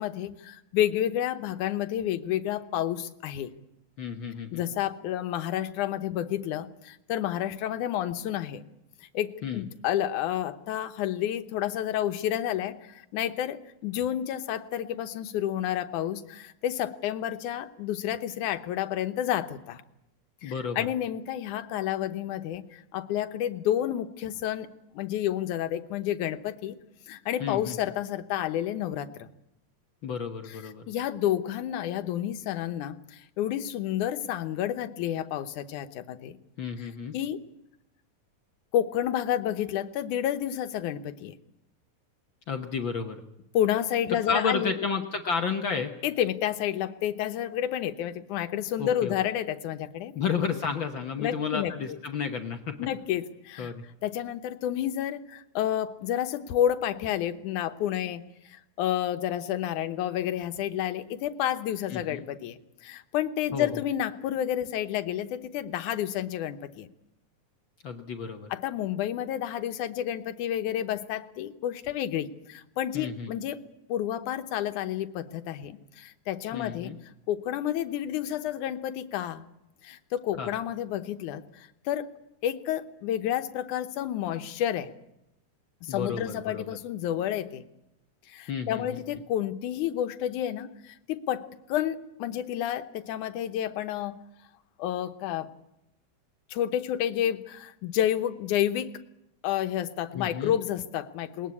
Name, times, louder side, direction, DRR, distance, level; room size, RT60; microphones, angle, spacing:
voice 1, 0.0-3.5 4.5-8.6 9.1-19.8 20.4-24.7 24.9-26.8 27.1-29.3 30.5-30.6 30.9-36.4 36.8-36.9 37.1-37.4 38.7-41.4 43.5-44.8 46.0-50.1 51.2-51.7 52.8-53.7 54.0-58.2 58.5-66.9 68.5-73.6 73.9-77.0 77.3-79.5 79.8-82.1 82.4-84.9 85.8-87.6 88.3-94.2 94.8-95.5 96.5-98.9 99.4-101.5, left 11 dB, 85° left, 10 dB, 2.5 m, -30 dB
voice 2, 4.0-4.6 9.4-9.6 20.4-20.9 27.4-27.8 30.0-30.8 36.6-37.1 42.5-43.2 44.3-45.9 48.8-49.1 50.1-52.8 53.6-53.8 61.9-62.2 63.5-63.7 67.8-68.5 72.9-73.3 76.5-77.0 80.4-80.5 85.9-86.7 88.5-89.0 100.1-100.5, left 6 dB, 55° left, 5 dB, 1.4 m, -31 dB
20.0 x 20.0 x 8.4 m, 0.85 s
omnidirectional pair, 3.4 m